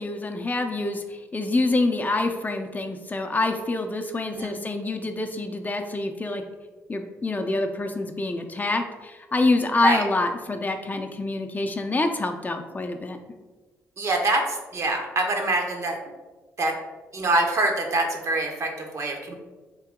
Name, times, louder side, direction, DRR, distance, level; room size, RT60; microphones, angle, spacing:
voice 1, 0.0-6.4 6.9-13.2, left 2 dB, 25° left, 5 dB, 0.5 m, -26 dB
voice 2, 14.0-16.0 16.6-16.8 17.1-19.3, right 2 dB, 50° right, 2 dB, 0.9 m, -25 dB
3.8 x 2.7 x 3.6 m, 1.2 s
supercardioid pair, 55°, 7 cm